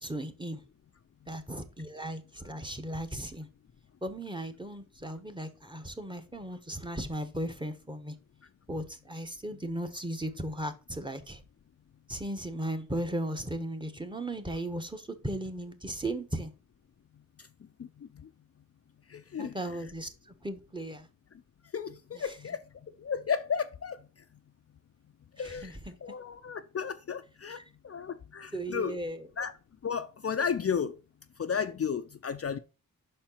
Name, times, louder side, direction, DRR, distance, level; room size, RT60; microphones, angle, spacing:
voice 1, 0.0-0.6 1.3-3.5 4.0-8.1 8.7-11.4 12.1-16.5 19.4-20.1 20.4-21.1 25.4-26.0 27.5-27.6 28.5-29.2, right 1 dB, 15° right, 1.1 m, -36 dB
voice 2, 19.1-19.5 19.8-19.9 21.7-22.6 23.0-24.0 25.4-25.7 26.0-27.6 27.8-29.0 29.4-29.5 29.8-31.0 31.4-32.6, left 6 dB, 45° left, 0.5 m, -33 dB
5.8 x 4.3 x 5.6 m
cardioid pair, 75°, 35 cm